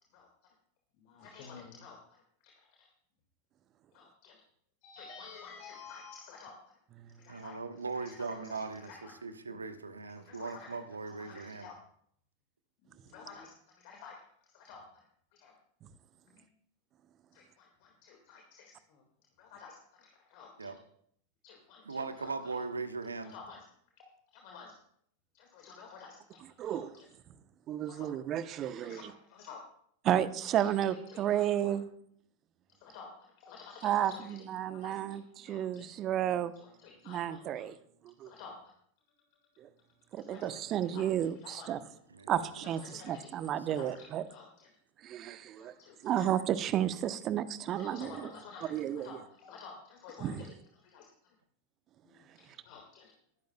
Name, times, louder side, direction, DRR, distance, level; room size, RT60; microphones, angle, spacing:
voice 1, 1.1-2.0 3.9-4.4 4.8-6.5 7.2-7.6 8.5-9.1 10.3-10.8 11.2-11.7 12.9-13.5 13.8-14.2 14.5-14.8 15.4-15.5 17.3-19.0 19.4-19.8 20.3-20.7 21.4-22.3 23.3-23.6 24.0-24.7 25.3-26.4 26.7-27.1 27.9-28.1 28.6-29.6 30.6-30.7 31.1-31.7 32.8-33.1 33.4-34.2 34.6-34.9 35.4-35.9 36.6-37.6 38.3-38.5 40.3-40.5 40.9-41.1 41.4-41.7 42.6-44.7 45.6-46.1 47.7-50.3 50.8-51.1 52.1-53.1, left 5 dB, 45° left, 1 dB, 1.9 m, -51 dB
voice 2, 7.3-11.7 20.6-20.8 21.8-23.3 42.1-42.7 43.6-43.9, right 4 dB, 75° right, 9 dB, 1.1 m, -40 dB
voice 3, 26.4-26.9 27.7-29.1 30.0-31.8 33.8-36.5 37.0-37.8 38.0-38.3 39.6-39.7 40.1-41.8 42.3-44.3 45.0-45.7 46.0-48.3 48.6-49.2 50.2-50.5, right 11 dB, 30° right, 13 dB, 0.8 m, -32 dB
20.5 x 10.5 x 2.3 m, 0.66 s
figure-of-eight pair, 90°, 0 cm